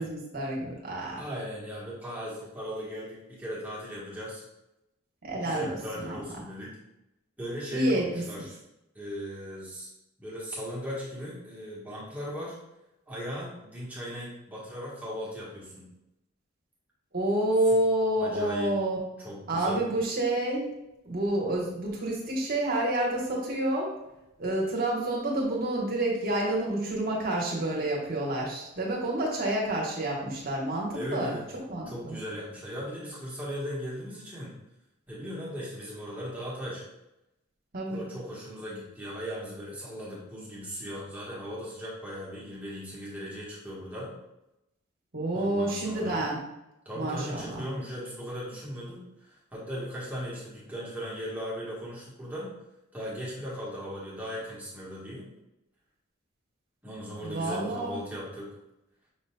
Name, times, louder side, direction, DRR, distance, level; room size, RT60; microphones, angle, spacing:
voice 1, 0.0-1.2 5.2-5.7 5.9-6.2 7.7-8.0 8.4-8.5 17.1-19.0 19.5-20.7 21.0-23.9 24.4-31.3 31.7-32.2 37.7-38.0 45.1-46.4 46.9-47.6 57.2-58.0, right 1 dB, 45° right, -2 dB, 1.2 m, -28 dB
voice 2, 1.2-4.4 5.4-6.7 7.4-8.6 8.9-9.9 10.2-12.6 13.1-15.8 17.7-17.8 18.2-18.7 19.2-19.9 30.9-31.4 31.8-34.5 35.1-36.8 37.9-44.1 45.3-46.2 46.8-52.5 52.9-55.3 56.8-58.5, equal, 10° right, -7 dB, 1.3 m, -38 dB
6.0 x 3.9 x 2.3 m, 0.90 s
head